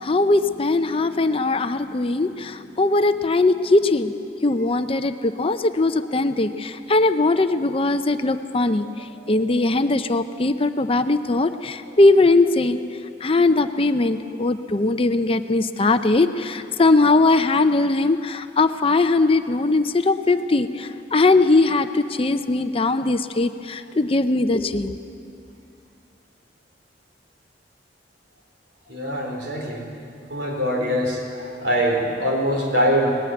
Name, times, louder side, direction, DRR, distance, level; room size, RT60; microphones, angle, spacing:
voice 1, 0.0-4.1 4.4-12.8 13.2-25.0, left 2 dB, 30° left, 10 dB, 0.6 m, -20 dB
voice 2, 28.9-29.9 30.3-33.2, equal, 70° right, 0 dB, 4.0 m, -23 dB
19.5 x 15.0 x 9.4 m, 2.5 s
head